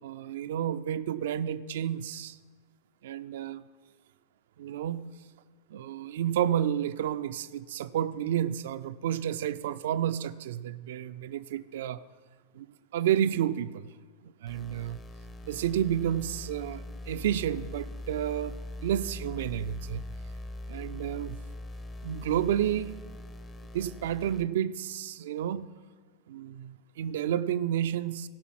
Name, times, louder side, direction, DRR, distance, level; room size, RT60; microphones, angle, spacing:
voice 1, 0.0-2.4 3.0-3.6 4.6-5.1 5.7-12.0 12.5-12.7 12.9-13.9 14.2-15.0 15.4-18.6 18.8-20.0 20.7-21.4 22.0-23.0 23.7-25.7 26.3-28.3, right 10 dB, 55° right, 13 dB, 0.3 m, -30 dB
sound 1, 14.5-24.4, left 1 dB, 20° left, 0.7 m, -42 dB
16.5 x 5.6 x 6.0 m, 1.5 s
figure-of-eight pair, 90°, 0 cm